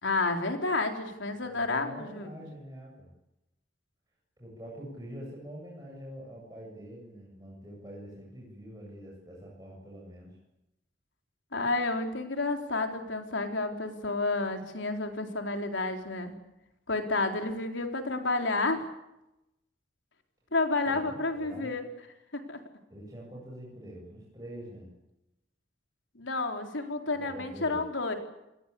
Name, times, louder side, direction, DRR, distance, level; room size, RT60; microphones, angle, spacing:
voice 1, 0.0-2.3 11.5-16.3 16.9-18.8 20.5-21.9 22.3-22.6 26.2-28.1, left 3 dB, 80° left, 4 dB, 4.1 m, -30 dB
voice 2, 1.5-3.1 4.4-10.4 20.8-21.7 22.9-24.9 27.1-27.8, right 1 dB, 20° right, -3 dB, 7.8 m, -45 dB
28.5 x 21.0 x 8.5 m, 0.90 s
head